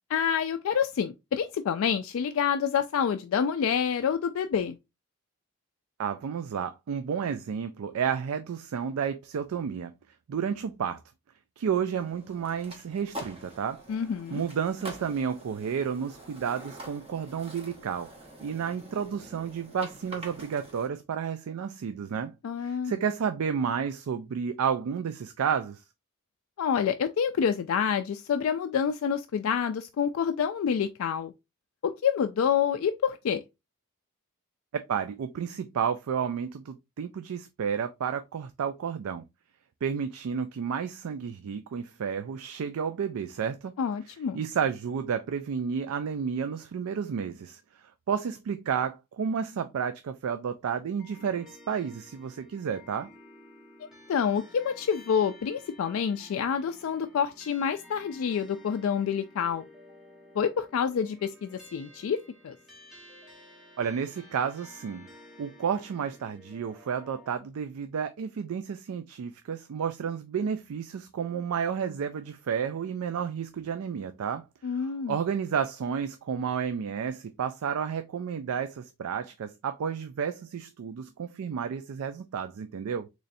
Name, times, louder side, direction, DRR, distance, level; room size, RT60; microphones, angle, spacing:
voice 1, 0.1-4.8 13.9-14.4 22.4-23.0 26.6-31.3 31.8-33.4 43.8-44.4 54.1-59.6 60.4-62.2 62.4-62.5 74.6-75.2, left 7 dB, 65° left, 0.3 m, -27 dB
voice 2, 6.0-9.9 10.3-11.0 11.6-13.8 14.3-18.1 18.4-22.3 22.6-25.8 34.9-39.2 39.8-43.7 44.3-47.6 48.1-53.1 63.8-65.1 65.4-83.1, right 7 dB, 75° right, 0.3 m, -31 dB
sound 1, 11.9-20.9, right 1 dB, 25° right, 0.8 m, -45 dB
sound 2, 51.0-67.4, left 1 dB, ahead, 1.1 m, -53 dB
4.0 x 3.1 x 2.5 m
head